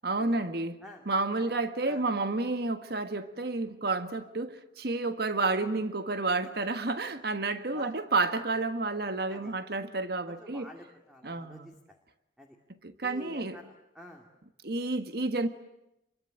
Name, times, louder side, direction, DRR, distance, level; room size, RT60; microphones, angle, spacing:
voice 1, 0.0-0.8 1.1-10.7 11.2-11.7 12.8-13.6 14.6-15.5, right 3 dB, 55° right, 1.5 m, -30 dB
voice 2, 10.3-12.0 12.4-12.6 13.0-14.3, left 1 dB, ahead, 2.4 m, -49 dB
28.5 x 23.0 x 9.1 m
head